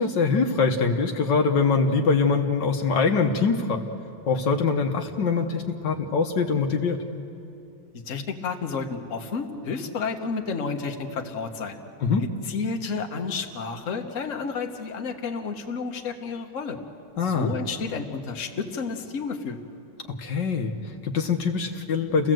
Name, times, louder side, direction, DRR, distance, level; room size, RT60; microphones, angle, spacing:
voice 1, 0.0-3.8 4.3-7.0 12.0-12.3 17.2-17.5 20.2-22.3, left 4 dB, 70° left, 4 dB, 1.7 m, -23 dB
voice 2, 8.1-11.8 12.5-16.8 17.2-19.6, left 5 dB, 45° left, 4 dB, 1.5 m, -31 dB
29.5 x 16.0 x 7.7 m, 2.7 s
omnidirectional pair, 2.1 m